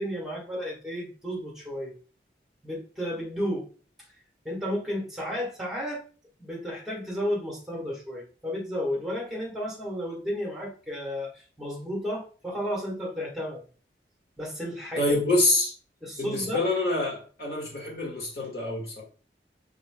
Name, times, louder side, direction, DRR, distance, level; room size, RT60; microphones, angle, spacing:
voice 1, 0.0-1.9 2.6-3.7 4.4-6.0 6.4-13.6 14.4-15.2 16.0-16.6, equal, ahead, 1.4 m, -33 dB
voice 2, 15.0-15.7 16.2-19.0, left 2 dB, 60° left, 1.6 m, -26 dB
5.6 x 3.6 x 2.2 m
head